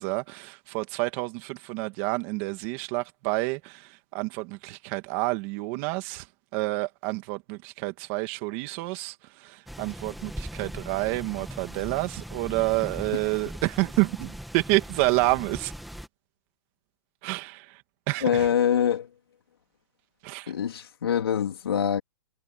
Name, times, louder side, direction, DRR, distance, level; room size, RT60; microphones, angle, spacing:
voice 1, 0.0-6.3 6.5-9.1 9.4-15.7 17.2-17.8 18.1-18.5 20.2-20.5, right 22 dB, 30° right, 2.5 m, -29 dB
sound 1, 9.7-16.1, equal, ahead, 2.1 m, -40 dB
voice 2, 18.2-19.1 20.5-22.0, left 9 dB, 90° left, 3.8 m, -24 dB
hypercardioid pair, 170°, 12 cm